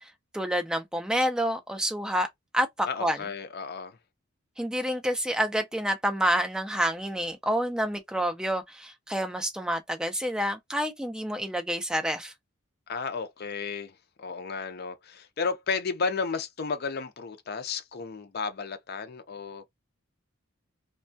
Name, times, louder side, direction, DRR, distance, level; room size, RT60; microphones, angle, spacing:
voice 1, 0.0-2.3 2.5-3.2 4.6-12.3, equal, 5° right, 0.4 m, -28 dB
voice 2, 2.9-4.0 12.9-19.7, left 5 dB, 50° left, 0.5 m, -33 dB
2.2 x 2.2 x 2.6 m
head